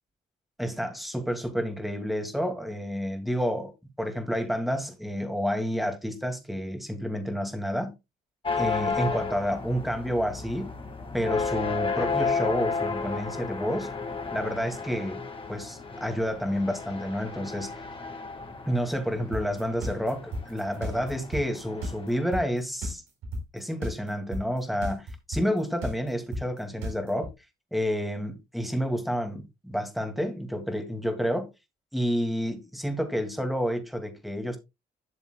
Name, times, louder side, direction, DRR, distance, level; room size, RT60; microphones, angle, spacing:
voice 1, 0.6-3.7 4.0-7.9 8.6-10.7 11.1-13.9 14.3-17.7 18.7-23.0 23.5-27.3 27.7-31.5 31.9-34.6, equal, ahead, 2.3 m, -29 dB
sound 1, 8.4-22.3, left 4 dB, 25° left, 1.9 m, -33 dB
sound 2, 19.3-27.3, right 1 dB, 90° right, 4.1 m, -33 dB
11.5 x 7.0 x 2.3 m
cardioid pair, 90°, 20 cm